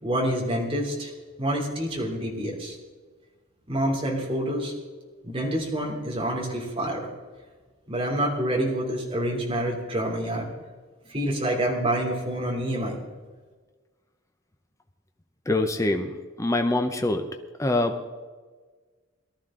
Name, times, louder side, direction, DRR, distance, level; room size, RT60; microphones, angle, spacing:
voice 1, 0.0-1.1 1.4-2.8 3.7-4.7 5.2-7.1 7.9-10.5 11.1-13.0, right 1 dB, 25° right, -2 dB, 3.1 m, -27 dB
voice 2, 15.5-16.1 16.4-17.2 17.6-18.2, left 2 dB, 15° left, 6 dB, 0.7 m, -24 dB
19.0 x 13.0 x 3.8 m, 1.4 s
head